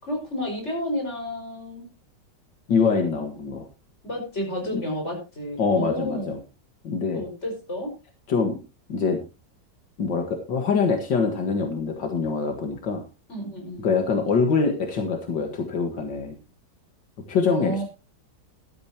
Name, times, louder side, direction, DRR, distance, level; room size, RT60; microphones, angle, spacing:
voice 1, 0.0-1.9 4.0-6.3 7.1-8.0 13.3-13.9 17.5-17.8, left 1 dB, 40° left, 2 dB, 5.7 m, -31 dB
voice 2, 2.7-3.7 4.7-4.8 5.6-6.4 6.8-7.2 8.3-8.5 8.9-9.2 10.0-13.0 13.8-16.4 17.3-17.8, left 5 dB, 80° left, 4 dB, 2.4 m, -24 dB
15.5 x 12.0 x 3.0 m, 0.29 s
omnidirectional pair, 1.9 m